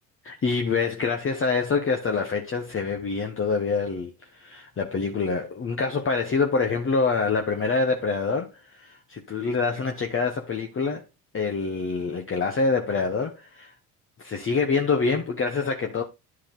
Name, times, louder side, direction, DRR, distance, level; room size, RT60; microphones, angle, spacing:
voice 1, 0.2-11.0 11.3-13.7 14.2-16.0, left 4 dB, 25° left, 1.2 m, -26 dB
10.5 x 4.8 x 3.8 m
hypercardioid pair, 60°, 46 cm